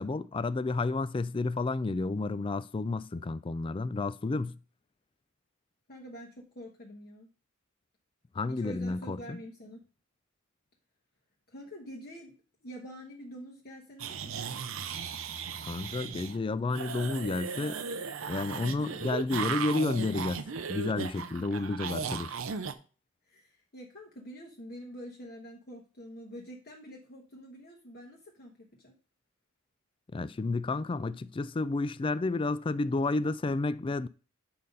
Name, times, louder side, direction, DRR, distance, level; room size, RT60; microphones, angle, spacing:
voice 1, 0.0-4.5 8.4-9.4 15.7-17.8 18.3-20.4 20.7-22.4 30.1-34.1, left 3 dB, 25° left, 0.3 m, -31 dB
voice 2, 5.9-7.3 8.5-9.8 11.5-14.5 21.5-21.6 23.2-28.9, equal, 45° left, 1.3 m, -46 dB
sound 1, 14.0-16.4 16.7-22.7, right 6 dB, 70° right, 0.7 m, -36 dB
8.4 x 4.0 x 5.4 m
head